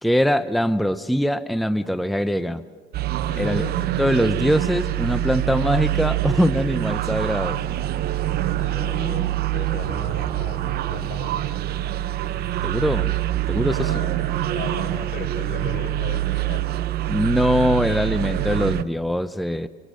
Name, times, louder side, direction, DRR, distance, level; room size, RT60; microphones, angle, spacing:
voice 1, 0.0-2.6 3.4-3.6 4.0-7.6 12.6-13.1 13.5-13.9 17.1-19.7, equal, ahead, 12 dB, 0.7 m, -22 dB
sound 1, 2.9-18.8, right 13 dB, 70° right, 0.8 m, -25 dB
voice 2, 3.2-3.7 8.5-9.2 9.5-11.6 13.7-14.1 14.5-16.7, left 6 dB, 75° left, 5 dB, 5.0 m, -36 dB
25.0 x 23.0 x 6.4 m, 1.5 s
cardioid pair, 110°, 17 cm